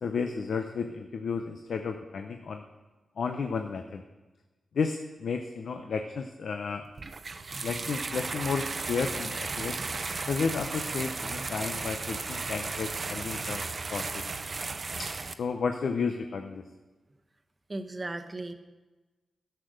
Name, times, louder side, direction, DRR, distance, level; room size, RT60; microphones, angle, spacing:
voice 1, 0.0-2.6 3.2-4.0 4.7-6.9 7.6-9.8 10.3-13.6 13.9-14.2 15.4-16.6, left 5 dB, 75° left, 6 dB, 0.6 m, -32 dB
sound 1, 7.0-15.3, right 4 dB, 50° right, 0.6 m, -35 dB
voice 2, 17.7-18.5, right 2 dB, 30° right, 7 dB, 1.0 m, -36 dB
11.5 x 6.8 x 6.4 m, 1.2 s
cardioid pair, 65°, 0 cm